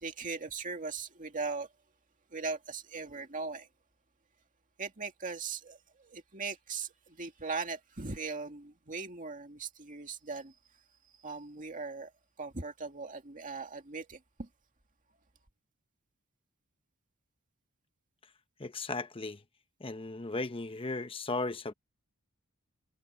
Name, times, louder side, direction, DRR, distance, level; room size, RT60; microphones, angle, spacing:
voice 1, 0.0-1.7 2.3-3.7 4.8-10.5 11.2-12.1 12.4-14.5, right 4 dB, 35° right, 2.2 m, -39 dB
voice 2, 18.6-19.4 19.8-21.7, left 3 dB, 25° left, 0.9 m, -36 dB
head